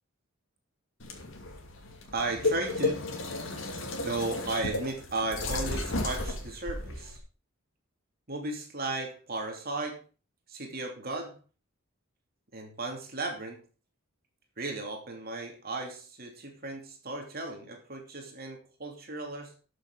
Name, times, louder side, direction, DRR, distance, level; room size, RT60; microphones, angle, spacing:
sound 1, 1.0-7.2, left 2 dB, 65° left, 2.7 m, -33 dB
voice 1, 2.1-3.0 4.0-7.2 8.3-10.0 10.5-11.4 12.5-13.7 14.6-19.5, right 2 dB, 45° right, 3 dB, 2.8 m, -35 dB
13.0 x 6.9 x 5.1 m, 0.35 s
head